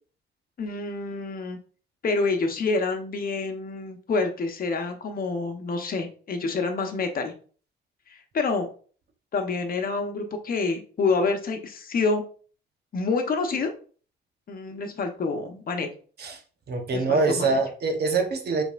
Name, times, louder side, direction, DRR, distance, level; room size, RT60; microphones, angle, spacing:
voice 1, 0.6-1.6 2.0-7.3 8.1-8.7 9.3-12.2 12.9-13.7 14.5-15.9 16.9-17.6, left 4 dB, 50° left, 5 dB, 1.0 m, -27 dB
voice 2, 16.7-18.6, right 3 dB, 55° right, 5 dB, 1.1 m, -24 dB
5.2 x 3.5 x 2.5 m, 0.41 s
cardioid pair, 90°, 20 cm